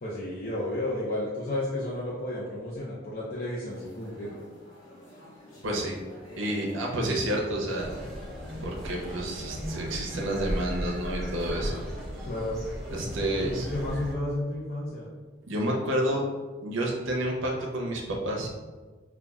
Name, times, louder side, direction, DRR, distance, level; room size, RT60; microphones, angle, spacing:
voice 1, 0.0-4.4 12.3-12.6 13.4-15.1, left 1 dB, 45° left, -6 dB, 0.5 m, -32 dB
sound 1, 3.7-11.6, equal, 75° left, 0.8 m, -48 dB
voice 2, 5.6-6.0 6.4-7.9 8.6-11.8 12.9-13.7 15.5-16.2 16.6-18.5, right 1 dB, 75° right, -1 dB, 0.6 m, -29 dB
sound 2, 7.8-14.1, equal, ahead, 0.7 m, -36 dB
5.3 x 2.3 x 2.3 m, 1.3 s
head